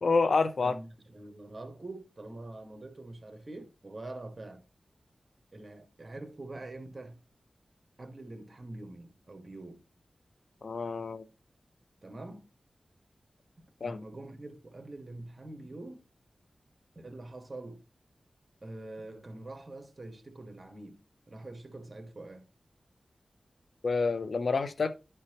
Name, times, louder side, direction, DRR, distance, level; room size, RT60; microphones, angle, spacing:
voice 1, 0.0-0.7 10.6-11.2 13.8-14.0 23.8-24.9, left 4 dB, 70° left, 0.7 m, -28 dB
voice 2, 0.6-4.6 5.5-7.2 8.0-9.8 12.0-12.5 13.8-16.0 16.9-17.8 18.6-21.0 21.3-22.5, right 2 dB, 40° right, 1.6 m, -45 dB
11.0 x 4.5 x 3.0 m
cardioid pair, 50°, 0 cm